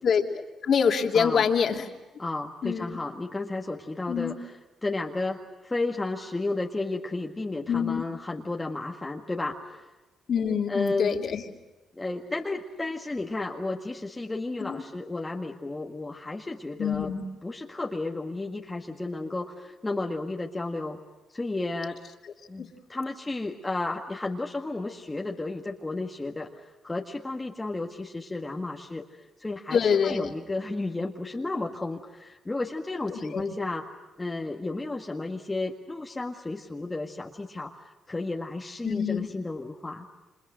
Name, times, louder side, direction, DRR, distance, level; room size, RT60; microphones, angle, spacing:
voice 1, 0.7-1.9 2.6-2.9 4.1-4.3 7.7-8.0 10.3-11.4 14.6-14.8 16.8-17.2 29.7-30.3 33.1-33.4 38.8-39.3, left 7 dB, 55° left, 4 dB, 2.9 m, -25 dB
voice 2, 2.2-9.9 10.7-11.2 11.9-17.2 17.4-21.0 21.3-22.0 22.5-33.9 34.2-40.1, left 2 dB, 20° left, 1 dB, 1.8 m, -33 dB
29.5 x 26.0 x 6.4 m, 1.1 s
cardioid pair, 90°, 0 cm